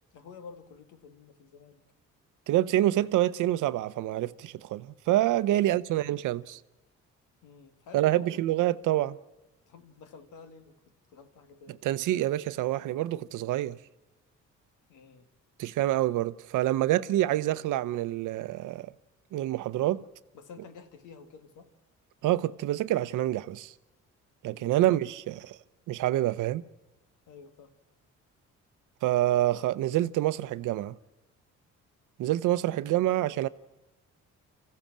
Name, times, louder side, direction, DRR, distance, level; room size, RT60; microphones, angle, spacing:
voice 1, 0.1-1.8 5.5-5.8 7.4-8.4 9.7-10.8 11.1-11.8 14.9-15.3 20.3-21.7 24.5-24.8 27.3-27.7 32.8-32.9, left 5 dB, 85° left, 2.2 m, -50 dB
voice 2, 2.5-6.6 7.9-9.2 11.8-13.8 15.6-18.9 19.3-20.0 22.2-23.7 24.4-25.6 25.9-26.6 29.0-30.9 32.2-33.5, right 14 dB, 85° right, 0.8 m, -27 dB
26.5 x 15.5 x 7.4 m
cardioid pair, 90°, 30 cm